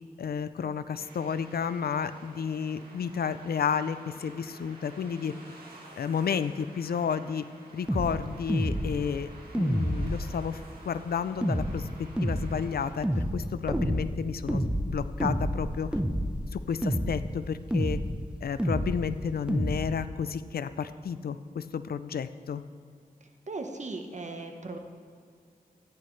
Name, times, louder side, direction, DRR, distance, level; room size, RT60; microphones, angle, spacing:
voice 1, 0.2-5.4 6.0-7.5 7.7-9.3 9.5-10.6 10.9-16.0 16.5-18.0 18.4-22.6, left 7 dB, 80° left, 13 dB, 0.4 m, -31 dB
sound 1, 1.0-12.9, right 2 dB, 80° right, 2.0 m, -51 dB
sound 2, 7.9-8.1 8.5-8.9 9.5-10.2 11.4-11.7 12.2-12.5 13.0-13.4 13.7-14.1 14.5-14.9 15.2-15.6 15.9-16.4 16.8-17.2 17.7-18.1 18.6-19.0 19.5-19.8, equal, 5° right, 0.7 m, -28 dB
voice 2, 23.5-24.8, right 3 dB, 50° right, 4 dB, 1.1 m, -37 dB
14.0 x 10.0 x 3.2 m, 2.1 s
wide cardioid pair, 75°, 16 cm